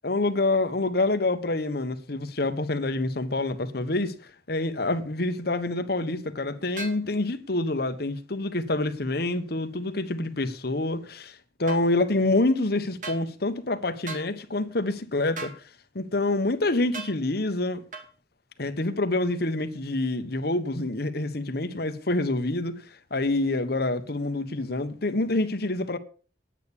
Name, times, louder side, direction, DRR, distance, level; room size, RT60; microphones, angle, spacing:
voice 1, 0.0-15.5 15.9-17.8 18.6-26.0, left 2 dB, 60° left, 1.3 m, -27 dB
sound 1, 6.8-7.0 11.7-11.8 13.0-13.2 14.1-14.3 15.4-15.6 16.9-17.2 17.9-18.1, right 3 dB, 45° right, 2.5 m, -37 dB
9.7 x 9.1 x 7.1 m
head